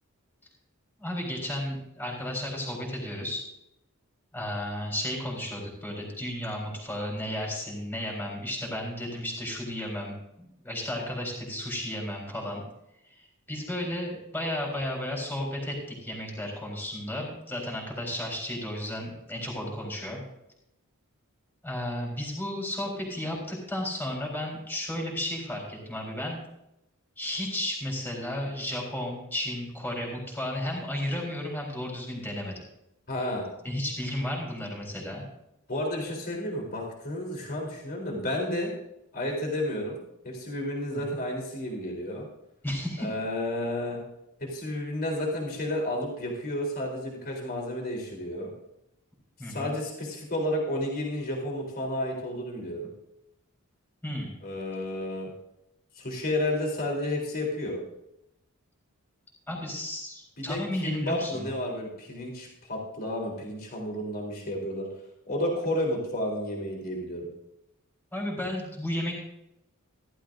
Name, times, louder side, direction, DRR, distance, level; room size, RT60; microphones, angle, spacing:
voice 1, 1.0-3.4 4.3-12.6 13.0-20.2 21.6-26.4 27.2-32.6 33.6-35.2 40.9-41.2 42.6-43.1 49.4-49.8 54.0-54.3 59.5-61.5 68.1-69.1, left 1 dB, 10° left, -2 dB, 4.1 m, -33 dB
voice 2, 33.1-33.5 35.7-38.7 39.1-40.0 40.2-42.3 43.0-44.0 44.4-48.5 49.5-52.9 54.4-55.3 56.0-57.8 60.4-64.9 65.3-67.3, left 1 dB, 45° left, -1 dB, 3.5 m, -31 dB
15.5 x 12.5 x 2.6 m, 0.84 s
head